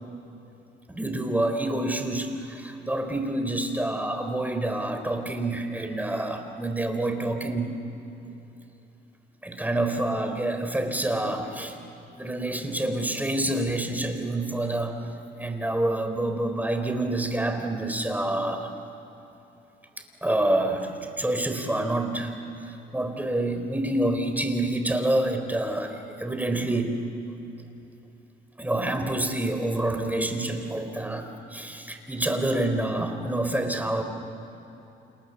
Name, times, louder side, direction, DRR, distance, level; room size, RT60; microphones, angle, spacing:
voice 1, 0.9-7.7 9.4-11.8 12.2-15.0 15.4-18.7 20.2-27.0 28.6-34.0, right 1 dB, 10° right, 6 dB, 3.9 m, -27 dB
29.5 x 28.0 x 7.2 m, 3.0 s
cardioid pair, 90°, 20 cm